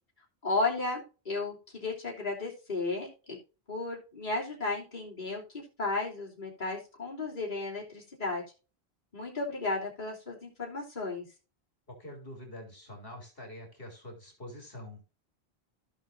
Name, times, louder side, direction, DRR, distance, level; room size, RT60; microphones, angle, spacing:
voice 1, 0.4-3.4 3.7-8.4 9.1-11.2, left 3 dB, 50° left, -4 dB, 3.2 m, -34 dB
voice 2, 11.9-15.0, left 1 dB, 65° left, 1 dB, 3.5 m, -45 dB
16.0 x 6.1 x 2.7 m, 0.34 s
omnidirectional pair, 1.1 m